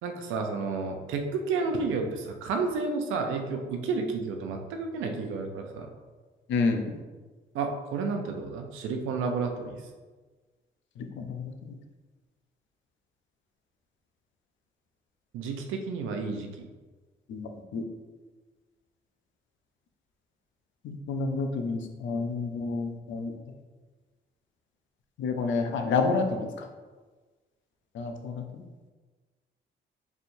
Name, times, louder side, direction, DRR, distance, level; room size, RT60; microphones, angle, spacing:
voice 1, 0.0-5.9 7.5-9.9 15.3-16.7, right 4 dB, 90° right, 4 dB, 0.6 m, -31 dB
voice 2, 6.5-6.9 11.0-11.7 17.3-17.8 20.8-23.3 25.2-26.5 27.9-28.4, left 4 dB, 70° left, 5 dB, 0.6 m, -29 dB
4.4 x 3.4 x 2.6 m, 1.3 s
cardioid pair, 90°, 20 cm